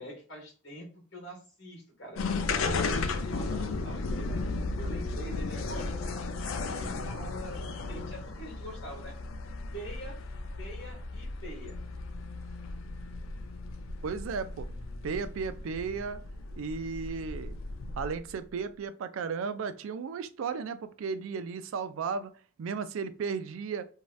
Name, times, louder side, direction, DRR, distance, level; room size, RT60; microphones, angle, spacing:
voice 1, 0.0-2.2 2.6-4.4 4.8-9.1 9.7-10.2 10.6-11.8, equal, 60° left, -1 dB, 1.4 m, -45 dB
sound 1, 2.1-18.3, left 3 dB, 80° left, 0.4 m, -35 dB
voice 2, 14.0-14.7 15.0-16.2 16.6-17.6 18.0-22.3 22.6-23.9, right 5 dB, 75° right, 12 dB, 0.3 m, -34 dB
3.0 x 2.7 x 2.2 m, 0.40 s
head